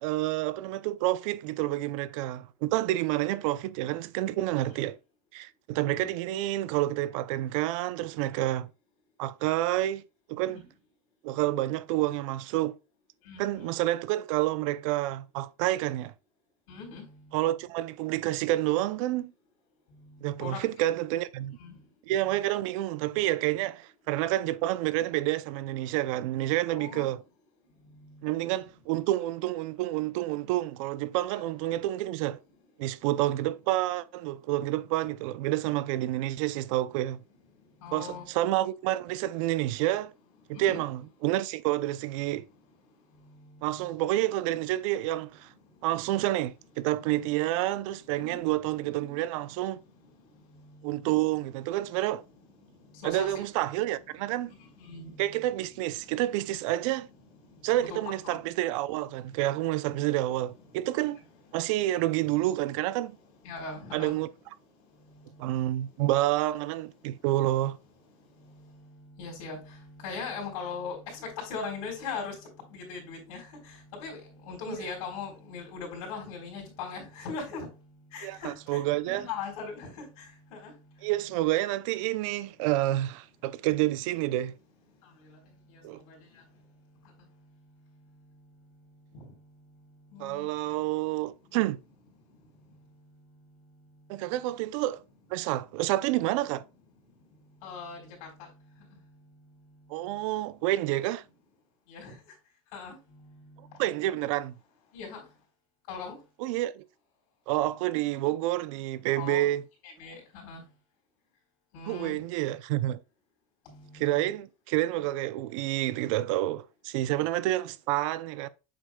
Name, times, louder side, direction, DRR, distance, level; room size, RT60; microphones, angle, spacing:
voice 1, 0.0-5.0 5.3-8.7 9.2-10.0 10.3-10.6 11.2-12.7 13.4-16.1 17.3-19.3 20.2-21.6 22.1-27.2 28.2-32.4 32.8-37.2 37.9-40.1 40.5-42.4 43.6-45.5 45.8-49.8 50.8-52.2 53.0-54.5 55.2-57.1 57.6-61.2 61.5-63.2 63.9-64.3 65.4-67.8 74.7-74.8 78.2-79.3 81.0-84.5 85.8-86.0 90.2-91.8 94.1-95.0 95.3-96.6 99.9-101.2 103.8-104.5 106.4-106.8 107.5-109.6 111.9-113.0 113.9-118.5, right 15 dB, 65° right, 0.5 m, -29 dB
voice 2, 13.3-13.7 16.7-17.0 20.4-20.6 21.6-21.7 26.8-27.1 37.8-38.2 40.5-40.8 48.2-48.4 53.0-53.4 54.9-55.1 57.8-58.4 63.4-64.1 69.2-69.6 70.0-72.3 72.7-73.4 74.0-74.2 74.5-77.7 78.1-78.5 79.0-79.9 80.5-80.7 89.1-89.2 90.1-90.5 97.6-98.0 101.9-102.1 102.7-102.9 104.9-105.2 105.9-106.1 109.2-109.4 110.0-110.6 111.7-112.1 114.0-114.3, left 5 dB, 80° left, 3.9 m, -39 dB
7.9 x 6.4 x 2.3 m
cardioid pair, 165°, 18 cm